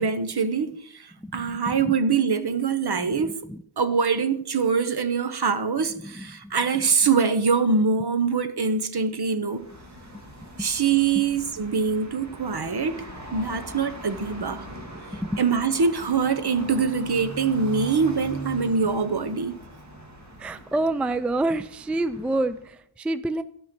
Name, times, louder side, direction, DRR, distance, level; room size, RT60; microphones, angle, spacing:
voice 1, 0.0-3.4 3.8-9.7 10.6-13.0 13.3-14.7 15.4-19.6, right 5 dB, 55° right, 1.0 m, -24 dB
voice 2, 1.2-2.0 3.0-3.6 6.0-6.6 10.6-10.7 15.1-15.4 20.4-23.4, right 2 dB, 5° right, 0.4 m, -28 dB
sound 1, 9.5-22.8, right 1 dB, 35° right, 2.6 m, -41 dB
13.5 x 5.7 x 6.0 m
wide cardioid pair, 105°, 46 cm